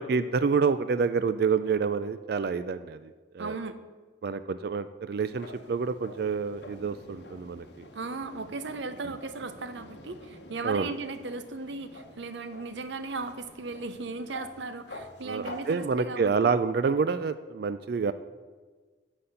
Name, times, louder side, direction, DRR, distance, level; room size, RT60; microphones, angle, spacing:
voice 1, 0.0-3.6 4.2-7.7 10.6-10.9 15.2-18.1, right 5 dB, 55° right, 12 dB, 0.3 m, -28 dB
voice 2, 3.4-3.8 7.9-16.5, right 3 dB, 75° right, 11 dB, 0.7 m, -37 dB
sound 1, 5.1-15.9, left 1 dB, 65° left, 0.9 m, -48 dB
11.0 x 4.2 x 7.8 m, 1.4 s
head